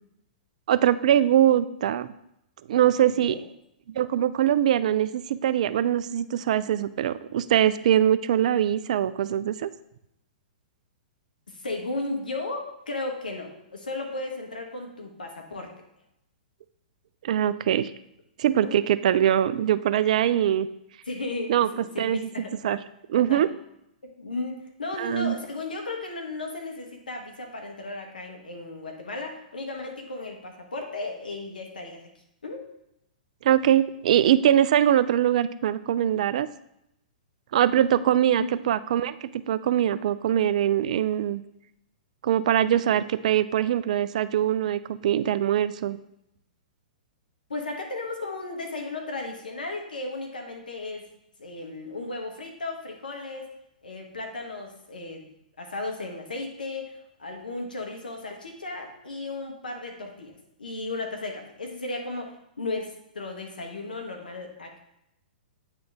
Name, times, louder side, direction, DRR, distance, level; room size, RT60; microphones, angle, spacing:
voice 1, 0.7-2.1 2.7-3.4 4.0-9.7 17.2-17.9 18.4-20.7 21.5-22.3 22.6-22.8 23.1-23.5 25.0-25.3 33.4-36.5 37.5-41.4 42.2-46.0, right 10 dB, 55° right, 14 dB, 0.3 m, -22 dB
voice 2, 3.1-3.4 11.5-15.7 18.6-18.8 21.1-22.8 23.3-23.4 24.0-32.0 32.4-32.6 38.4-38.5 47.5-51.1 51.4-53.5 53.8-55.2 55.6-60.3 60.6-64.8, left 2 dB, 75° left, 2 dB, 1.3 m, -35 dB
8.9 x 3.8 x 3.4 m, 0.80 s
figure-of-eight pair, 110°, 5 cm